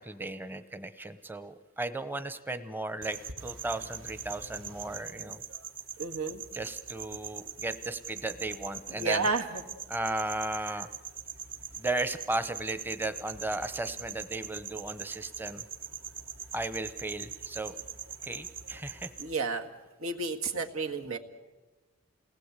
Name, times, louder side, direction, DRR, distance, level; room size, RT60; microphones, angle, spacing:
voice 1, 0.0-5.4 6.5-9.3 9.9-10.9 11.8-15.6 16.5-17.8 18.2-19.1, right 2 dB, 10° right, 11 dB, 0.9 m, -35 dB
sound 1, 3.0-19.3, right 7 dB, 60° right, 1.6 m, -42 dB
voice 2, 6.0-6.4 8.9-9.6 19.2-19.7 20.0-21.2, right 3 dB, 80° right, 5 dB, 1.9 m, -31 dB
28.5 x 19.0 x 8.3 m, 1.2 s
head